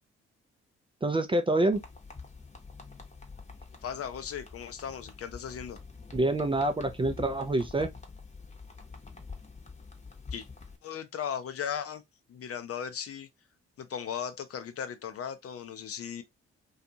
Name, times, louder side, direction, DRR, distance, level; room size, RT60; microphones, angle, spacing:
voice 1, 1.0-1.8 6.1-7.9, right 2 dB, 15° right, 0.4 m, -26 dB
sound 1, 1.7-10.8, left 4 dB, 20° left, 0.9 m, -46 dB
voice 2, 3.8-5.8 10.3-10.5 10.8-12.0 12.3-13.3 13.8-16.2, left 8 dB, 50° left, 0.6 m, -37 dB
2.5 x 2.3 x 2.6 m
hypercardioid pair, 45°, 31 cm